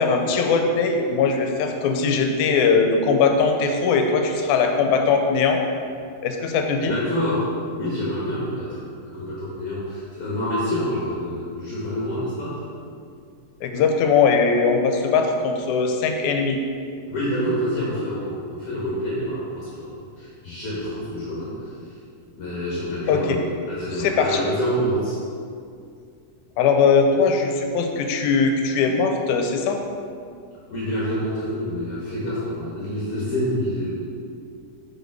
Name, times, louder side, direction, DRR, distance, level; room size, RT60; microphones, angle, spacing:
voice 1, 0.0-5.6 6.2-7.0 13.6-16.6 23.1-23.4 24.0-24.4 26.6-29.8, left 5 dB, 85° left, 4 dB, 2.0 m, -20 dB
voice 2, 6.9-12.6 17.1-19.9 20.2-22.0 22.4-25.2 30.7-34.0, equal, 60° left, -8 dB, 2.0 m, -27 dB
6.3 x 5.1 x 4.6 m, 2.3 s
omnidirectional pair, 3.4 m